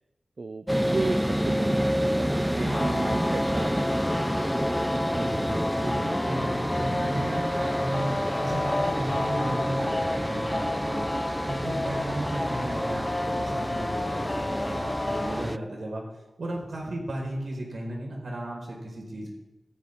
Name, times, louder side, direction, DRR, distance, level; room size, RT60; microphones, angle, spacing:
voice 1, 0.4-4.2, right 3 dB, 65° right, 11 dB, 0.5 m, -34 dB
sound 1, 0.7-15.6, equal, 5° right, 0.4 m, -29 dB
voice 2, 2.6-3.1 5.1-8.1 8.4-11.1 11.5-16.0 16.4-19.3, right 1 dB, 85° right, -1 dB, 4.6 m, -34 dB
sound 2, 2.7-15.4, left 2 dB, 40° left, 1.3 m, -31 dB
16.0 x 14.0 x 3.6 m, 1.1 s
wide cardioid pair, 75°, 0 cm